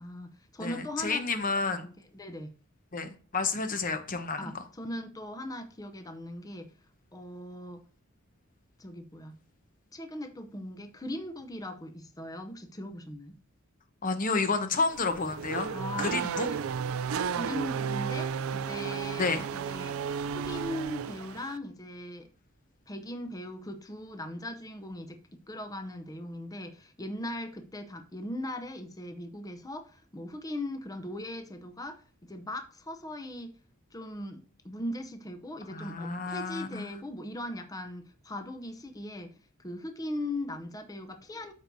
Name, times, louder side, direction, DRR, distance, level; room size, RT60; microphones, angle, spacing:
voice 1, 0.0-2.5 4.4-6.7 7.1-7.8 8.8-9.4 9.9-13.3 15.7-16.2 16.5-16.6 17.3-20.0 20.3-22.3 22.9-25.2 25.5-33.5 33.9-41.5, left 1 dB, 15° left, 0.6 m, -39 dB
voice 2, 0.6-1.9 2.9-4.5 14.0-15.7 16.0-16.5 19.2-19.4 35.7-36.9, left 4 dB, 40° left, 0.9 m, -30 dB
Race car auto racing / Accelerating revving vroom, 14.9-21.6, right 6 dB, 75° right, 0.4 m, -33 dB
12.5 x 4.5 x 2.7 m
head